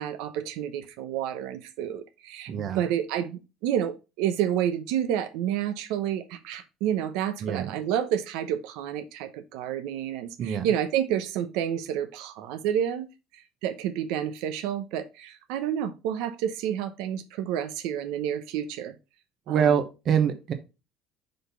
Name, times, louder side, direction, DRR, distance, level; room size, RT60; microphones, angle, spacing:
voice 1, 0.0-13.1 13.3-18.9 19.5-19.8, right 10 dB, 80° right, 8 dB, 0.7 m, -29 dB
voice 2, 2.5-2.8 7.4-7.7 10.4-10.6 19.5-20.5, right 7 dB, 40° right, 8 dB, 1.0 m, -25 dB
5.1 x 4.1 x 5.5 m, 0.28 s
cardioid pair, 160°, 0 cm